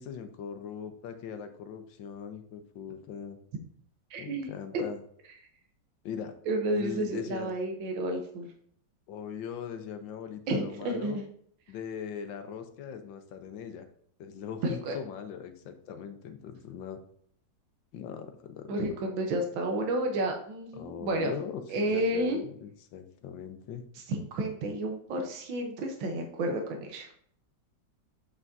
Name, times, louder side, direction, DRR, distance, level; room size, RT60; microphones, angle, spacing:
voice 1, 0.0-3.4 4.2-5.0 6.0-6.3 6.7-7.5 9.1-11.2 11.7-13.9 14.2-17.0 17.9-18.8 20.7-23.8, left 7 dB, 80° left, 7 dB, 1.6 m, -40 dB
voice 2, 4.1-4.5 4.7-4.8 6.5-8.5 10.5-11.2 14.6-15.0 18.7-21.3 21.7-22.4 24.1-27.1, right 1 dB, 85° right, 3 dB, 1.7 m, -31 dB
8.1 x 5.9 x 2.6 m, 0.63 s
omnidirectional pair, 2.0 m